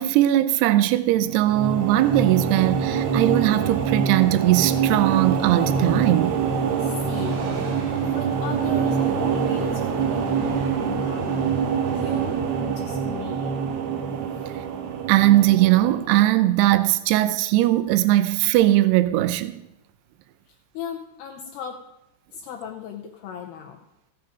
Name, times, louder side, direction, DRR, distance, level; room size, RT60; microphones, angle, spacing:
voice 1, 0.0-6.4 15.1-19.6, right 15 dB, 85° right, 2.4 m, -19 dB
sound 1, 1.2-16.5, right 6 dB, 70° right, 2.7 m, -25 dB
Train, 4.3-17.4 17.7-17.8, right 2 dB, 50° right, 2.7 m, -42 dB
voice 2, 6.8-7.5 7.9-13.6 14.3-14.6 20.7-21.9 22.3-23.8, left 8 dB, 75° left, 2.6 m, -37 dB
15.5 x 9.2 x 5.1 m
omnidirectional pair, 5.4 m